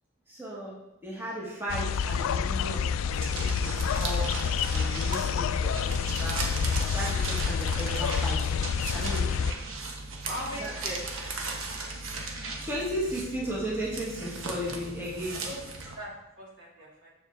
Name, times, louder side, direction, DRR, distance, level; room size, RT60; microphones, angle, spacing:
voice 1, 0.3-8.6 8.9-9.7 10.5-10.7 12.6-15.5, equal, 10° right, -6 dB, 1.5 m, -36 dB
sound 1, 1.7-9.5, left 6 dB, 90° left, 0.3 m, -28 dB
sound 2, 3.1-15.9, right 3 dB, 90° right, 1.1 m, -37 dB
voice 2, 10.2-11.0 15.4-15.6 16.0-17.1, equal, 60° right, -4 dB, 2.4 m, -39 dB
7.0 x 6.9 x 3.5 m, 0.89 s
head